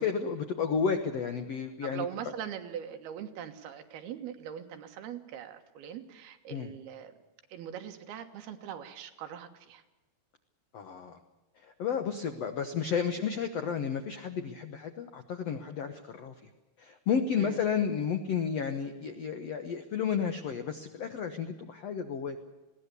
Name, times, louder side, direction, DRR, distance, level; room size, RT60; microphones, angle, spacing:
voice 1, 0.0-2.0 6.5-6.7 10.7-11.2 11.6-16.3 16.8-22.4, left 6 dB, 80° left, 7 dB, 1.4 m, -32 dB
voice 2, 1.8-7.1 7.5-9.8 17.4-17.6, right 9 dB, 70° right, 6 dB, 3.3 m, -41 dB
21.0 x 17.0 x 8.4 m, 1.1 s
omnidirectional pair, 4.8 m